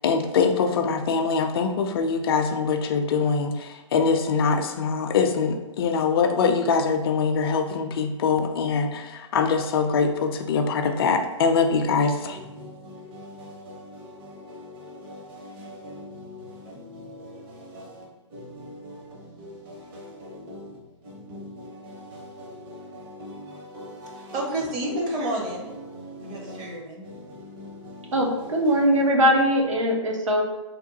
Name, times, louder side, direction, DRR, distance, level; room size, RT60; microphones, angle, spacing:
voice 1, 0.0-12.4, left 5 dB, 50° left, 6 dB, 0.4 m, -23 dB
sound 1, 12.3-29.7, left 1 dB, 45° right, 0.9 m, -42 dB
voice 2, 24.1-25.7 26.2-27.0, right 1 dB, 25° right, -1 dB, 0.6 m, -30 dB
voice 3, 28.1-30.4, equal, 70° right, 0 dB, 0.7 m, -21 dB
3.5 x 2.2 x 2.8 m, 1.1 s
figure-of-eight pair, 120°, 16 cm